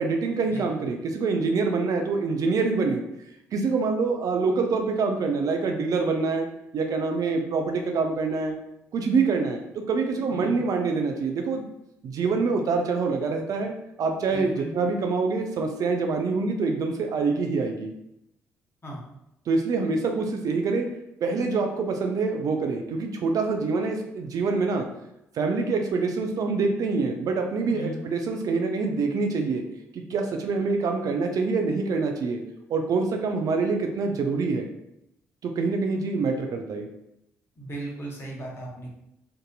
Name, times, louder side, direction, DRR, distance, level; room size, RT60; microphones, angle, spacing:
voice 1, 0.0-3.0 3.5-6.5 6.7-8.5 8.9-11.6 12.0-13.7 14.0-17.9 19.5-20.9 21.2-24.9 25.3-29.6 29.9-32.4 32.7-34.7 35.4-36.9, right 4 dB, 50° right, 3 dB, 0.4 m, -25 dB
voice 2, 14.3-14.7 18.8-19.0 27.7-28.0 37.6-39.0, right 2 dB, 30° left, -3 dB, 1.0 m, -37 dB
2.7 x 2.5 x 2.2 m, 0.83 s
figure-of-eight pair, 45°, 8 cm